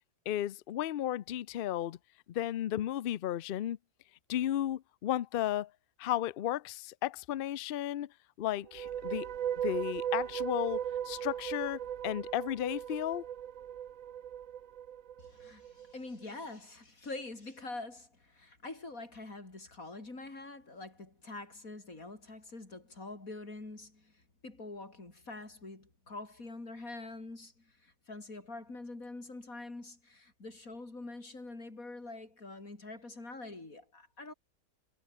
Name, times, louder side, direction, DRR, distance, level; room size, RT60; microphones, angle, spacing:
voice 1, 0.3-2.0 2.3-3.8 4.3-5.7 6.0-8.1 8.4-9.3 9.6-13.3, left 12 dB, 90° left, 0.4 m, -34 dB
sound 1, 8.6-15.9, right 10 dB, 60° right, 1.2 m, -37 dB
voice 2, 15.2-34.3, left 2 dB, 60° left, 5.3 m, -45 dB
omnidirectional pair, 1.7 m